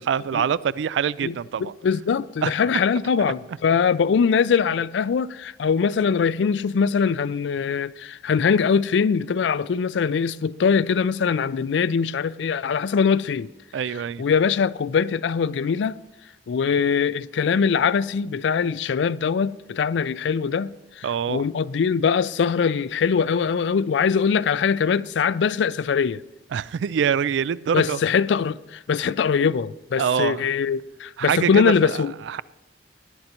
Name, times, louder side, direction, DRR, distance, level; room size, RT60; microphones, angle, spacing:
voice 1, 0.0-1.7 2.4-2.5 13.7-14.2 21.0-21.4 26.5-28.0 30.0-30.5 31.2-32.4, right 7 dB, 80° right, 0.3 m, -25 dB
voice 2, 1.8-13.5 14.2-16.0 16.5-26.2 27.7-32.1, left 6 dB, 75° left, 0.4 m, -22 dB
18.5 x 10.5 x 2.9 m
head